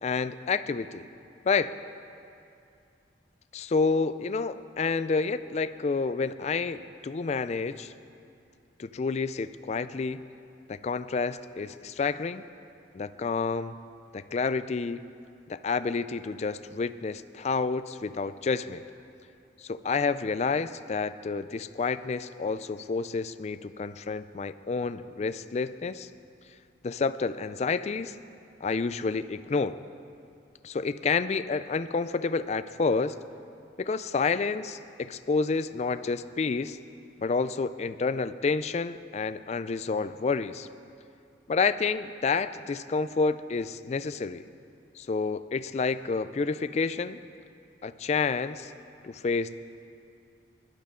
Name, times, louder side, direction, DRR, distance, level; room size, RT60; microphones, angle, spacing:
voice 1, 0.0-1.1 1.4-1.8 3.5-7.9 8.8-10.2 10.7-12.4 12.9-13.8 14.1-15.0 15.5-18.8 19.6-26.1 26.8-28.1 28.6-29.8 30.6-33.2 33.8-36.8 37.2-40.7 41.5-44.4 45.0-47.2 47.8-48.7 49.0-49.5, left 4 dB, 40° left, 13 dB, 0.3 m, -29 dB
20.5 x 11.5 x 3.7 m, 2.6 s
head